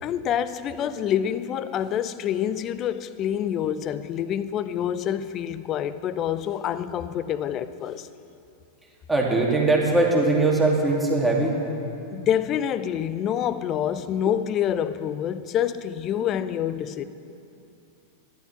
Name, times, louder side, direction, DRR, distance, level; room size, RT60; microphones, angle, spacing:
voice 1, 0.0-8.1 12.1-17.0, left 9 dB, 35° left, 0.6 m, -27 dB
voice 2, 9.1-11.5, right 2 dB, 5° right, 2.5 m, -21 dB
14.0 x 11.5 x 7.8 m
figure-of-eight pair, 90°, 0 cm